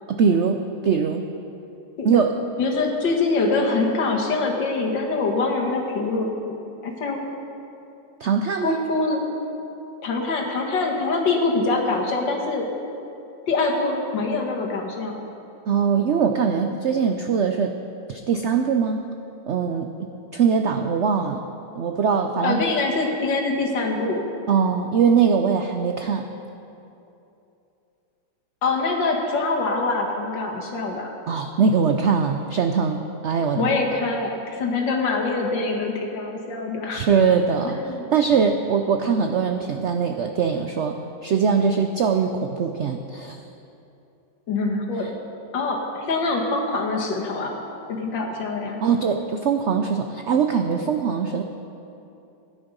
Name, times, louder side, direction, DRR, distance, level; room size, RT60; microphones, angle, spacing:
voice 1, 0.1-1.2 2.0-2.3 8.2-8.8 15.7-17.7 18.1-19.1 19.5-19.9 20.3-21.4 21.8-22.6 24.5-26.3 31.3-33.7 36.9-37.8 38.1-41.0 41.2-43.4 48.8-51.4, right 6 dB, 85° right, 5 dB, 0.6 m, -21 dB
voice 2, 2.6-6.5 6.8-7.2 8.6-9.2 10.0-12.6 13.5-15.2 22.4-24.2 28.6-31.1 33.6-37.1 37.6-38.1 44.5-45.1 45.5-47.6 47.9-48.8, left 3 dB, 90° left, 0 dB, 2.2 m, -24 dB
16.0 x 9.7 x 5.3 m, 2.8 s
omnidirectional pair, 1.9 m